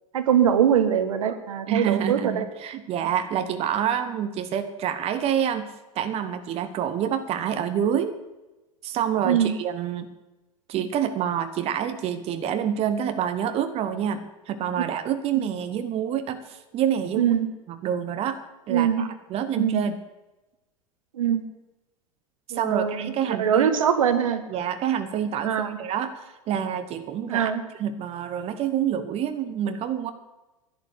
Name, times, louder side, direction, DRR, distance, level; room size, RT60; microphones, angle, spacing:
voice 1, 0.1-2.5 9.2-9.5 17.2-17.5 18.7-19.1 19.6-19.8 21.1-21.4 22.5-23.1 23.4-24.4 25.4-25.8 27.3-27.6, right 8 dB, 70° right, 10 dB, 1.4 m, -22 dB
voice 2, 1.7-5.7 5.9-8.2 8.8-10.1 10.7-17.4 17.7-18.4 18.7-20.0 22.5-23.7 24.5-27.5 27.8-30.1, right 9 dB, 35° right, 9 dB, 1.1 m, -27 dB
11.0 x 10.5 x 7.9 m, 1.0 s
figure-of-eight pair, 85°, 18 cm